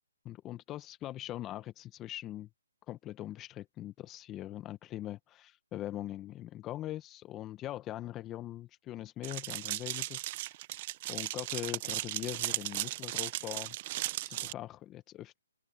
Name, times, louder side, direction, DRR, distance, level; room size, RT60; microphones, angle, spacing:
voice 1, 0.2-2.5 2.9-10.5 11.1-13.8 14.2-15.4, left 13 dB, 15° left, 0.8 m, -42 dB
sound 1, 9.2-14.5, right 17 dB, 30° right, 0.6 m, -36 dB
open air
hypercardioid pair, 155°, 0 cm